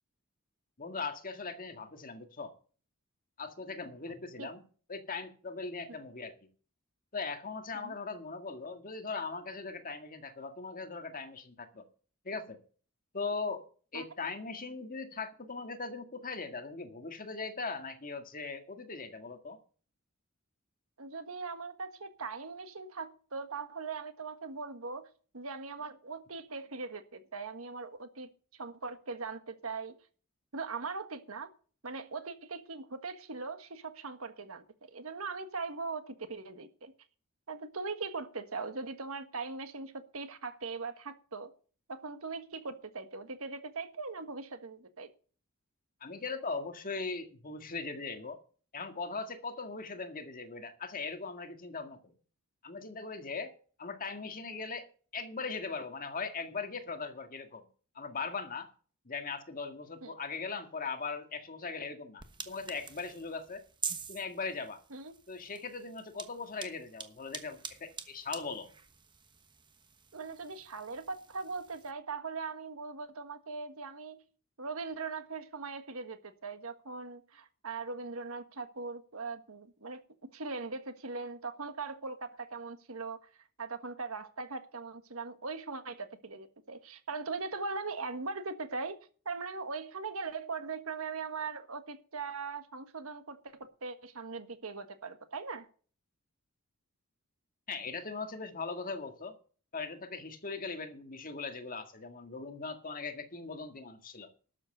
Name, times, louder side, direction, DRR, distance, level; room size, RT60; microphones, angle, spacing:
voice 1, 0.8-2.5 3.4-4.6 4.9-6.3 7.1-11.8 12.3-12.6 13.1-13.6 13.9-19.6 46.0-48.4 48.7-52.1 52.6-53.5 53.8-54.9 55.1-57.6 58.0-58.7 59.1-63.6 64.1-64.8 65.3-68.7 97.7-99.4 99.7-104.3, left 4 dB, 40° left, 1.8 m, -39 dB
voice 2, 21.0-30.0 30.5-31.5 31.8-36.9 37.5-41.5 41.9-45.1 60.0-60.1 64.9-65.1 70.1-74.2 74.6-80.0 80.3-83.3 83.6-95.7, right 4 dB, 70° right, 1.5 m, -40 dB
sound 1, 62.2-71.9, right 6 dB, 20° right, 1.2 m, -46 dB
12.5 x 7.6 x 6.6 m
head